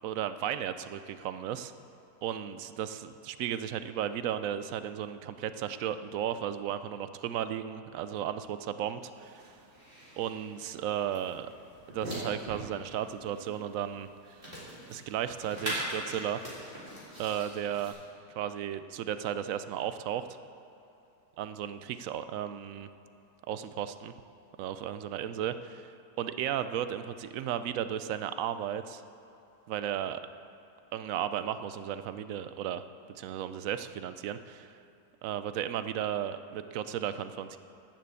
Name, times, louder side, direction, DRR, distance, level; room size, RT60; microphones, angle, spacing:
voice 1, 0.0-1.7 2.2-9.5 10.2-11.5 11.9-14.4 14.9-16.4 17.2-17.9 18.4-20.3 21.4-22.9 23.5-24.1 24.6-29.0 29.7-30.2 30.9-32.8 33.1-34.8 35.2-37.6, right 10 dB, 70° right, 11 dB, 0.8 m, -34 dB
sound 1, 9.2-17.9, equal, 30° right, 3.9 m, -42 dB
12.0 x 7.5 x 8.2 m, 2.9 s
omnidirectional pair, 1.7 m